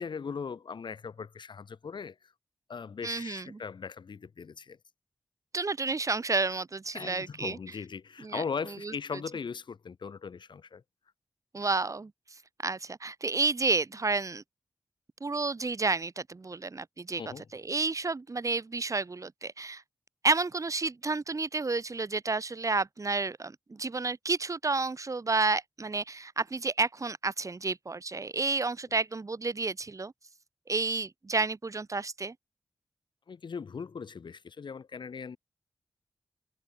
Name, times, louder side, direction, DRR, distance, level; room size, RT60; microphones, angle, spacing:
voice 1, 0.0-2.3 2.7-4.8 6.9-10.8 17.2-17.5 33.3-35.4, left 5 dB, 75° left, 5.8 m, -39 dB
voice 2, 3.0-3.5 5.5-7.6 8.2-8.4 8.8-8.9 11.5-12.1 12.6-14.4 15.2-17.2 17.5-19.8 20.2-30.1 30.7-32.3, right 3 dB, 40° right, 1.9 m, -30 dB
cardioid pair, 60°, 8 cm